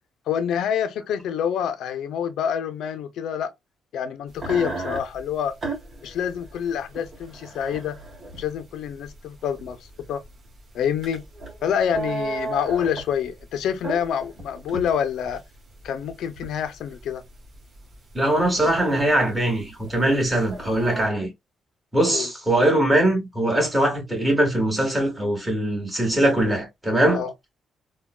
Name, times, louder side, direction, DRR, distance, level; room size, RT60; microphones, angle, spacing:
voice 1, 0.3-3.5 3.9-5.5 6.0-8.0 8.4-9.8 10.1-10.2 10.7-11.2 11.6-15.4 15.8-17.2 22.1-22.3 27.1-27.3, left 8 dB, 75° left, 0.5 m, -27 dB
sound 1, 4.3-21.1, right 3 dB, 45° right, 1.2 m, -36 dB
voice 2, 18.1-21.3 21.9-27.2, right 1 dB, 10° right, 1.7 m, -21 dB
3.6 x 2.2 x 2.2 m
cardioid pair, 90°, 0 cm